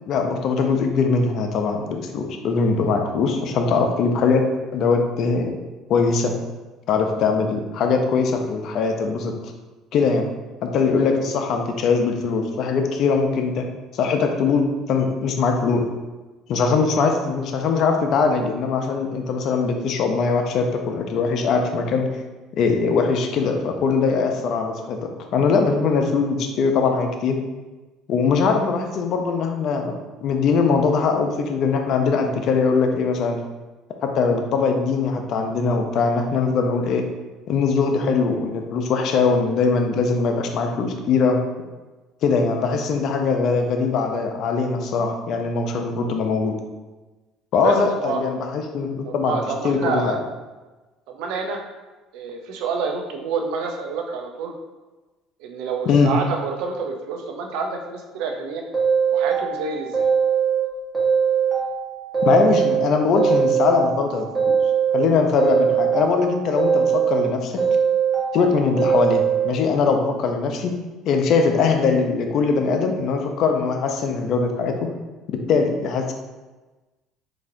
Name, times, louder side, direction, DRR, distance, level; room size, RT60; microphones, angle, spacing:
voice 1, 0.1-4.4 4.7-5.6 5.9-6.3 6.9-9.3 9.9-10.3 10.6-13.7 13.9-15.8 16.5-22.1 22.6-27.4 28.1-33.4 34.0-37.1 37.5-41.4 42.2-46.5 47.5-49.4 49.6-50.2 55.9-56.1 62.2-64.6 64.9-67.6 68.3-70.7 71.0-74.7 75.3-76.1, left 4 dB, 60° left, 4 dB, 0.5 m, -21 dB
voice 2, 49.0-50.2 51.1-51.6 52.1-54.5 55.4-58.6 59.1-60.0, right 5 dB, 75° right, 3 dB, 0.5 m, -28 dB
sound 1, 58.7-60.6 60.9-62.8 63.2-65.0 65.4-67.2 67.6-69.5, right 7 dB, 15° right, 1.5 m, -21 dB
3.9 x 2.8 x 2.7 m, 1.2 s
supercardioid pair, 85°, 0 cm